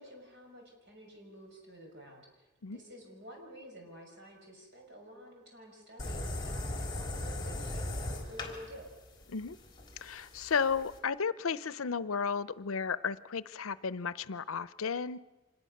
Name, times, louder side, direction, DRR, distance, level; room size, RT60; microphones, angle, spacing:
voice 1, 0.0-8.9, equal, 55° right, 1 dB, 6.0 m, -51 dB
sound 1, 6.0-11.0, left 1 dB, 20° left, 3.4 m, -38 dB
voice 2, 10.0-15.2, left 6 dB, 75° left, 16 dB, 0.6 m, -33 dB
25.5 x 20.5 x 6.6 m, 1.1 s
head